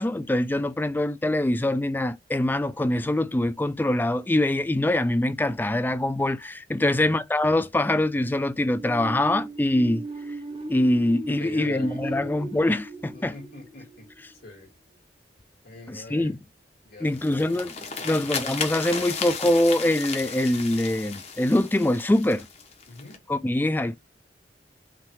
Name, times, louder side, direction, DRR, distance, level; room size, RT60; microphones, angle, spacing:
voice 1, 0.0-10.1 10.7-13.3 15.9-16.4 17.0-17.7 18.0-22.5 23.3-24.0, left 1 dB, 10° left, 0.3 m, -24 dB
voice 2, 6.8-7.1 11.3-12.3 13.1-14.1 14.4-14.7 15.6-16.3 16.8-17.6 18.0-18.2 22.9-23.2, left 2 dB, 60° left, 2.1 m, -43 dB
sound 1, 8.7-14.4, right 2 dB, 30° right, 0.7 m, -37 dB
sound 2, 17.1-23.2, left 5 dB, 40° left, 0.9 m, -34 dB
5.7 x 2.3 x 3.1 m
head